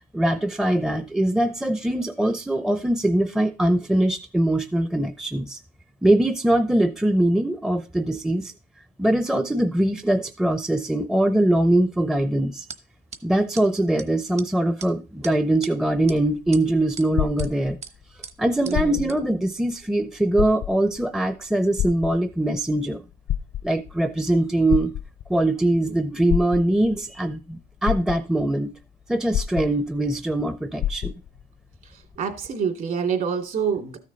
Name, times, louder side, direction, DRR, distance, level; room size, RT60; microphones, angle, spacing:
voice 1, 0.1-5.6 6.0-8.5 9.0-12.6 13.2-17.8 18.4-23.0 23.6-24.9 25.3-28.7 29.1-31.1, right 1 dB, 5° right, 0.6 m, -22 dB
sound 1, 12.7-12.8 13.1-13.2 13.6-13.7 14.0-14.1 14.4-14.5 14.8-14.9 15.2-15.7 16.1-16.2 16.5-17.1 17.4-17.5 17.8-17.9 18.2-18.3 18.7-18.8 19.1-19.2, right 5 dB, 40° right, 1.1 m, -38 dB
sound 2, 16.2-18.0 18.6-19.3 19.7-19.8 20.3-21.0 21.8-22.6 23.1-24.0 24.7-25.4 26.3-27.0 27.5-27.6 27.8-28.6 29.3-30.1 30.4-30.5 30.8-31.4 32.1-32.2, left 11 dB, 65° left, 0.6 m, -28 dB
voice 2, 18.7-19.0 32.2-34.0, right 6 dB, 55° right, 2.6 m, -26 dB
13.0 x 6.5 x 4.0 m
cardioid pair, 110°, 17 cm